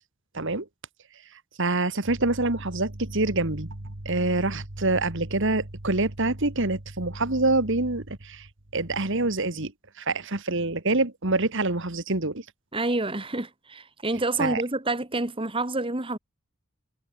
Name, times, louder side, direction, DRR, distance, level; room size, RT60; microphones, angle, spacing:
voice 1, 0.3-0.7 1.6-8.5 8.7-9.7 10.0-12.4 14.4-14.6, right 2 dB, 60° right, 2.2 m, -26 dB
voice 2, 12.7-16.2, right 2 dB, 25° right, 1.8 m, -28 dB
head